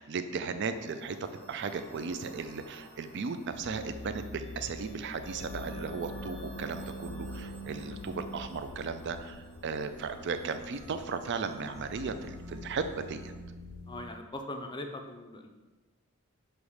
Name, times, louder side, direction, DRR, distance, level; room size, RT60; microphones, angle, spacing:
voice 1, 0.0-13.3, right 5 dB, 55° right, 9 dB, 0.4 m, -36 dB
sound 1, 0.6-13.3, right 1 dB, 80° right, 1.8 m, -53 dB
sound 2, 3.5-14.0, left 1 dB, 85° left, 0.6 m, -45 dB
voice 2, 13.9-15.5, left 1 dB, 20° left, 5 dB, 0.5 m, -40 dB
6.5 x 3.1 x 4.8 m, 1.2 s
head